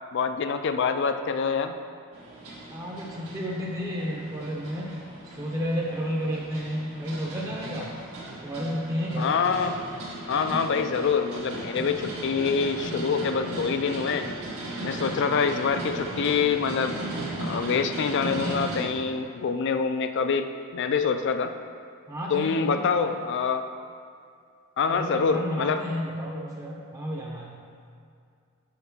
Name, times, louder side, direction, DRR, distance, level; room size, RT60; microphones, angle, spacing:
voice 1, 0.1-1.8 9.2-9.8 10.3-14.3 14.8-17.0 17.4-21.5 22.3-23.6 24.8-25.8, left 5 dB, 55° left, 9 dB, 0.4 m, -26 dB
sound 1, 2.1-18.8, right 2 dB, 85° right, 1.5 m, -36 dB
voice 2, 2.7-5.0 5.2-8.0 8.4-9.3 22.1-23.1 24.9-27.6, equal, 15° right, -3 dB, 0.6 m, -32 dB
5.7 x 4.1 x 5.9 m, 2.3 s
head